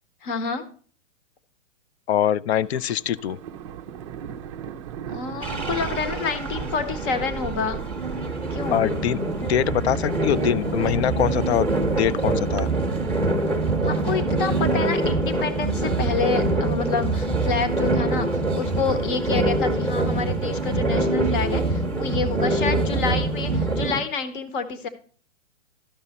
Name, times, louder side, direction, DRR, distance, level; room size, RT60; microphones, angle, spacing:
voice 1, 0.2-0.6 5.1-7.8 8.5-8.8 13.8-24.9, left 5 dB, 45° left, 1.3 m, -28 dB
voice 2, 2.1-3.4 8.7-12.7, left 10 dB, 60° left, 0.5 m, -24 dB
Thunder, 2.6-17.3, right 9 dB, 25° right, 0.4 m, -39 dB
sound 1, 5.4-24.0, right 2 dB, 5° left, 1.0 m, -25 dB
13.0 x 5.6 x 4.2 m
hypercardioid pair, 140°, 37 cm